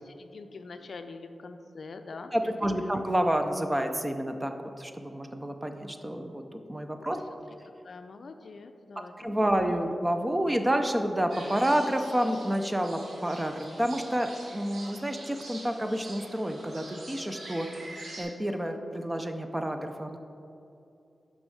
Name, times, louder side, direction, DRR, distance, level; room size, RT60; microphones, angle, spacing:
voice 1, 0.0-2.8 7.8-10.0, left 3 dB, 65° left, 8 dB, 0.4 m, -44 dB
voice 2, 2.3-7.2 9.2-20.2, equal, 15° right, 6 dB, 0.5 m, -29 dB
sound 1, 11.3-18.2, right 1 dB, 80° right, 1.7 m, -45 dB
6.1 x 5.4 x 6.4 m, 2.7 s
wide cardioid pair, 130°, 0 cm